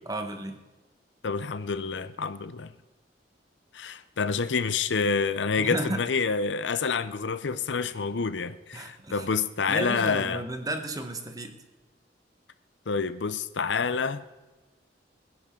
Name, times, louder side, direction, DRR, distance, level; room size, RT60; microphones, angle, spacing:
voice 1, 0.1-0.6 5.6-6.0 8.7-9.3 9.7-11.5, right 1 dB, 20° right, 6 dB, 1.2 m, -33 dB
voice 2, 1.2-2.7 3.7-10.4 12.9-14.2, left 5 dB, 80° left, 14 dB, 0.6 m, -28 dB
21.0 x 10.5 x 3.7 m, 1.2 s
head